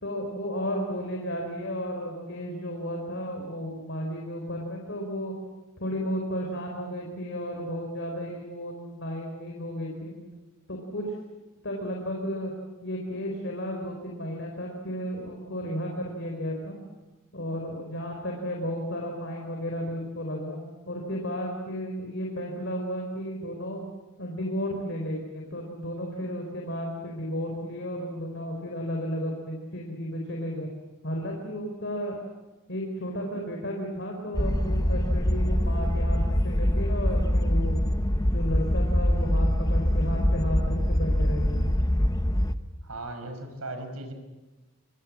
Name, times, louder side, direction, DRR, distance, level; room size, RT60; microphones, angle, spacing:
voice 1, 0.0-5.3 5.8-10.1 10.7-11.0 11.6-12.5 12.8-16.8 17.3-20.6 20.9-23.8 24.2-30.7 31.0-32.2 32.7-37.8 38.2-41.7, equal, 55° left, 0 dB, 4.6 m, -33 dB
sound 1, 34.3-42.5, equal, 15° left, 0.9 m, -24 dB
voice 2, 42.8-44.1, right 2 dB, 85° right, 6 dB, 5.7 m, -37 dB
25.5 x 25.5 x 7.5 m, 1.1 s
head